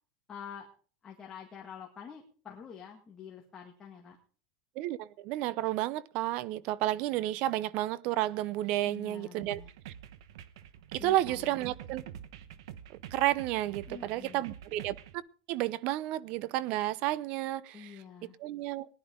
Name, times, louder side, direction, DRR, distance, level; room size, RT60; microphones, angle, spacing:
voice 1, 0.3-0.7 1.0-4.2 8.8-9.7 11.0-11.7 13.9-14.4 17.7-18.4, left 7 dB, 20° left, 1.9 m, -47 dB
voice 2, 4.8-9.6 10.9-12.0 13.1-15.2 15.5-17.9 18.4-18.9, right 15 dB, 50° right, 0.7 m, -31 dB
sound 1, 9.5-15.2, right 10 dB, 80° right, 1.1 m, -47 dB
19.0 x 11.0 x 3.8 m
supercardioid pair, 145°, 2 cm